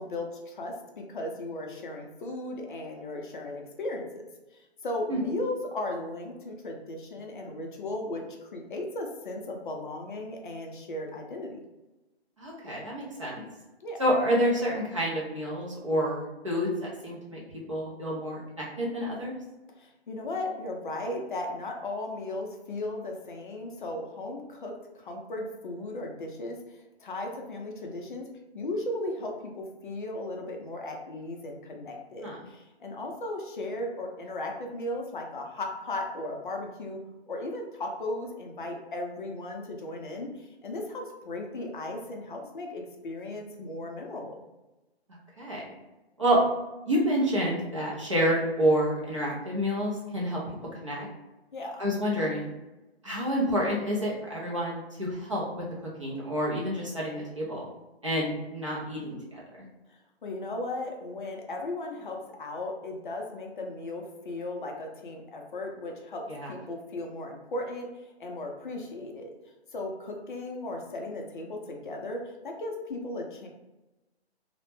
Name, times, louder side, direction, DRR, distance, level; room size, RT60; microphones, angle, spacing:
voice 1, 0.0-4.2 4.8-11.6 13.8-14.0 19.8-28.3 28.5-37.0 37.3-44.4 51.5-51.9 59.9-67.9 68.2-69.3 69.7-73.5, left 2 dB, 50° left, 2 dB, 0.5 m, -36 dB
voice 2, 12.4-13.4 14.0-17.4 17.7-19.3 32.2-32.4 45.4-45.6 46.2-46.4 46.8-50.4 50.8-51.1 51.8-52.5 53.0-55.4 56.0-57.7 58.0-59.4 66.3-66.5, equal, 30° right, -5 dB, 0.4 m, -28 dB
2.1 x 2.0 x 3.0 m, 1.0 s
hypercardioid pair, 160°, 32 cm